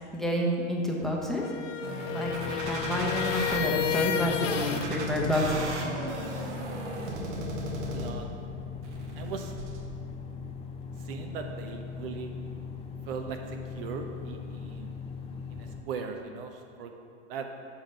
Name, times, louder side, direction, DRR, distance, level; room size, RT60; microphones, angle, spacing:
voice 1, 0.1-1.4 2.1-5.7, left 1 dB, ahead, -2 dB, 0.9 m, -29 dB
sound 1, 1.3-4.9, left 9 dB, 85° left, 0.6 m, -32 dB
sound 2, 1.8-3.6 4.3-8.3 8.8-9.8, right 1 dB, 65° right, 1.4 m, -36 dB
sound 3, 2.2-15.8, left 5 dB, 15° left, 0.6 m, -40 dB
voice 2, 7.8-8.3 9.2-9.5 11.0-12.3 13.1-15.1 15.5-16.9 17.3-17.5, right 5 dB, 50° right, 4 dB, 0.7 m, -39 dB
7.2 x 5.0 x 5.5 m, 2.4 s
hypercardioid pair, 105°, 36 cm